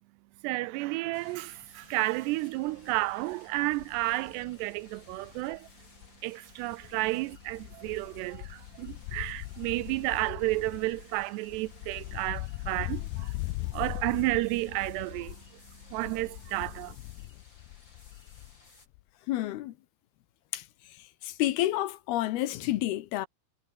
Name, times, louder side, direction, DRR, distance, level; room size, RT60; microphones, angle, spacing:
voice 1, 0.4-5.7 6.2-13.3 13.7-15.4 15.9-17.0, right 20 dB, 85° right, 2.7 m, -31 dB
sound 1, 1.1-18.9, left 3 dB, 25° left, 6.9 m, -59 dB
Wind, 1.6-1.9 2.3-2.4 2.7-6.2 6.5-18.7 18.9-19.0, left 21 dB, 90° left, 2.1 m, -41 dB
voice 2, 19.3-19.7 20.5-20.7 20.9-23.3, left 15 dB, 75° left, 2.7 m, -30 dB
omnidirectional pair, 4.9 m